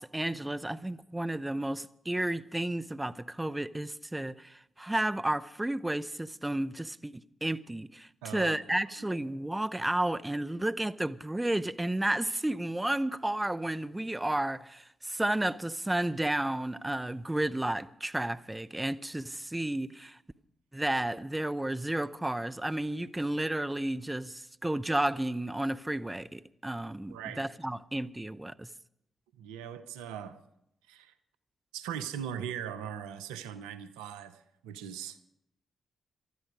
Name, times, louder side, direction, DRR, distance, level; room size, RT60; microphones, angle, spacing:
voice 1, 0.0-20.2 20.7-28.7, right 1 dB, 15° right, 0.7 m, -32 dB
voice 2, 8.2-8.6 8.9-9.2 27.1-27.5 29.4-30.4 30.9-31.1 31.7-35.2, right 9 dB, 85° right, 0.8 m, -40 dB
19.0 x 13.0 x 4.9 m
hypercardioid pair, 40°, 0 cm